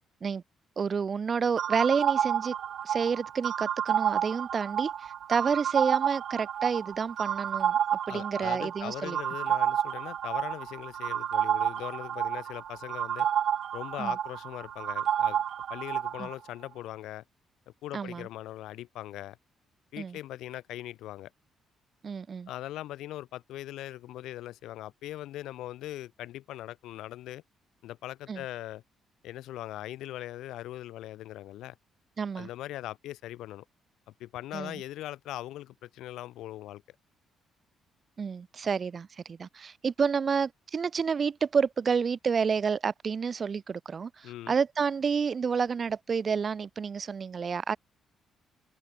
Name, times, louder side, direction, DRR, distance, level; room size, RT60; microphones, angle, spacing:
voice 1, 0.8-2.5 2.8-7.8 8.1-9.2 14.0-14.1 16.2-16.3 17.9-18.3 20.0-20.2 22.0-22.5 28.3-28.4 32.2-32.5 34.5-34.8 38.2-47.8, right 6 dB, 45° right, 0.4 m, -29 dB
sound 1, 1.6-16.3, right 9 dB, 65° right, 0.9 m, -30 dB
voice 2, 8.1-13.3 13.7-15.4 15.7-17.2 17.8-19.4 19.9-21.3 22.5-27.4 27.8-28.8 29.2-31.7 32.3-33.6 34.2-36.8 44.2-44.6, left 14 dB, 85° left, 1.5 m, -40 dB
cardioid pair, 90°, 0 cm